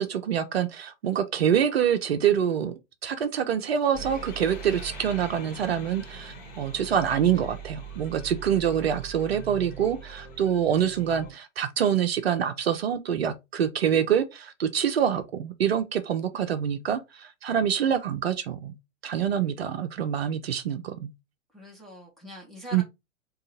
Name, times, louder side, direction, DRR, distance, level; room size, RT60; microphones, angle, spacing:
voice 1, 0.0-2.7 3.0-18.7 19.0-21.1 22.7-22.8, right 9 dB, 55° right, 0.6 m, -26 dB
sound 1, 3.9-11.3, right 5 dB, 35° left, 1.3 m, -41 dB
voice 2, 21.5-22.8, left 1 dB, ahead, 0.7 m, -43 dB
3.7 x 2.4 x 3.9 m
figure-of-eight pair, 110°, 38 cm